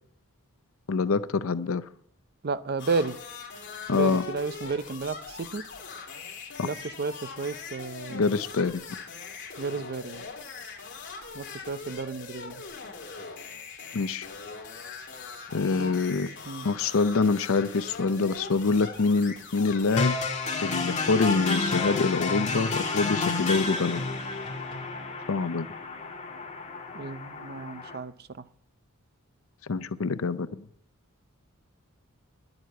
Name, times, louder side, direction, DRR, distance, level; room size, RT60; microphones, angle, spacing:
voice 1, 0.9-1.8 3.9-4.3 6.6-6.7 8.1-8.8 13.9-14.3 15.5-16.3 16.6-20.2 20.6-24.0 25.3-25.7 29.7-30.7, left 4 dB, 70° left, 14 dB, 0.6 m, -25 dB
voice 2, 2.4-3.2 3.9-5.6 6.6-8.3 9.6-10.2 11.3-12.6 15.8-15.9 16.5-16.7 26.9-28.1, right 4 dB, 45° right, 13 dB, 0.6 m, -32 dB
sound 1, 2.8-20.0, left 4 dB, 55° left, 2.7 m, -41 dB
sound 2, 20.0-28.0, left 3 dB, 35° left, 2.0 m, -30 dB
11.0 x 7.9 x 8.3 m, 0.67 s
head